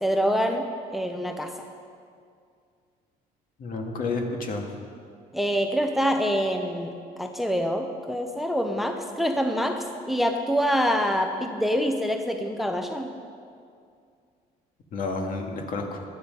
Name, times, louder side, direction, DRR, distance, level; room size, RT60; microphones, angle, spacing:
voice 1, 0.0-1.5 5.3-13.1, equal, ahead, 5 dB, 0.7 m, -26 dB
voice 2, 3.6-4.7 14.9-16.0, left 3 dB, 55° left, 2 dB, 1.9 m, -30 dB
15.0 x 10.0 x 5.3 m, 2.3 s
cardioid pair, 110°, 17 cm